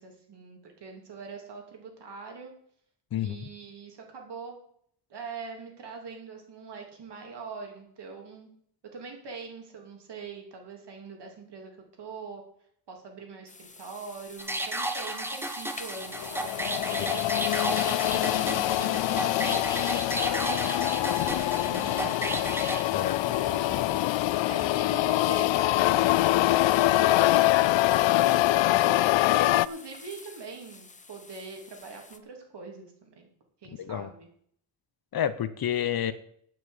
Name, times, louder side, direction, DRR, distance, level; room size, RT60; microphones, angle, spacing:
voice 1, 0.0-2.5 3.2-4.6 5.1-8.5 8.9-11.7 12.0-12.4 12.9-17.4 17.8-19.9 20.1-22.3 22.9-24.1 24.5-26.6 26.8-33.3 33.6-34.3, right 4 dB, 65° right, 2 dB, 3.3 m, -43 dB
voice 2, 3.1-3.5 17.1-17.2 22.9-23.3 33.8-34.1 35.1-36.1, left 10 dB, 55° left, 13 dB, 0.9 m, -30 dB
sound 1, 13.5-32.2, left 4 dB, 15° left, 0.8 m, -47 dB
sound 2, 14.4-22.8, right 1 dB, 5° right, 1.1 m, -33 dB
sound 3, 16.1-29.7, left 16 dB, 80° left, 0.5 m, -24 dB
9.2 x 7.9 x 8.2 m, 0.65 s
wide cardioid pair, 155°, 44 cm